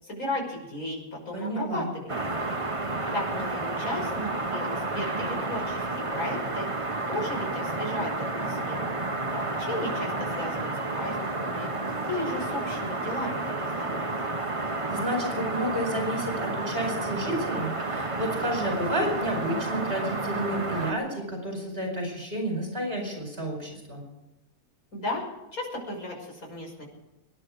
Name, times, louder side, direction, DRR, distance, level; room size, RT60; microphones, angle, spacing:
voice 1, 0.0-2.1 3.1-5.9 6.1-6.7 7.1-8.9 9.3-11.7 12.1-14.1 24.9-26.8, left 1 dB, 80° left, -1 dB, 6.4 m, -35 dB
voice 2, 1.3-1.9 14.6-24.0, equal, 40° right, 1 dB, 5.1 m, -31 dB
sound 1, 2.1-20.9, right 2 dB, 25° right, 1.4 m, -31 dB
25.0 x 11.0 x 5.0 m, 0.97 s
omnidirectional pair, 1.5 m